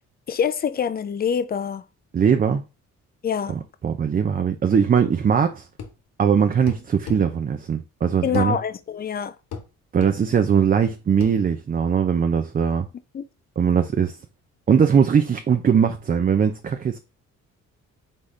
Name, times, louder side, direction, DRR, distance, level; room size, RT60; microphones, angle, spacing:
voice 1, 0.3-1.8 3.2-3.6 8.2-9.3 13.1-13.2, left 7 dB, 30° left, 0.5 m, -25 dB
voice 2, 2.1-2.6 3.5-5.7 6.2-8.6 9.9-12.9 13.6-14.2 14.7-17.0, right 7 dB, 30° right, 0.4 m, -20 dB
sound 1, 5.8-6.0 6.7-7.2 8.3-8.5 9.5-9.7 10.0-10.2 11.2-11.4, left 6 dB, 65° left, 1.0 m, -34 dB
4.0 x 3.5 x 3.2 m
cardioid pair, 90°, 30 cm